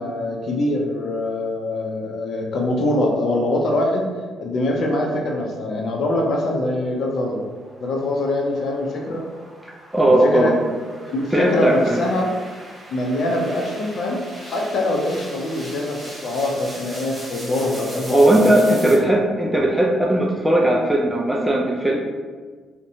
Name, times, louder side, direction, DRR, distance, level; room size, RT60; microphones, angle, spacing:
voice 1, 0.0-4.1 4.4-7.4 7.8-9.2 10.1-10.5 11.1-12.3 12.9-14.2 14.4-19.0, left 1 dB, 65° left, 0 dB, 0.5 m, -23 dB
sound 1, 6.9-18.9, right 1 dB, 30° right, 1.1 m, -40 dB
voice 2, 9.9-10.5 11.3-12.0 18.1-22.0, right 1 dB, 5° right, -2 dB, 0.3 m, -17 dB
2.6 x 2.1 x 2.7 m, 1.5 s
cardioid pair, 90°, 0 cm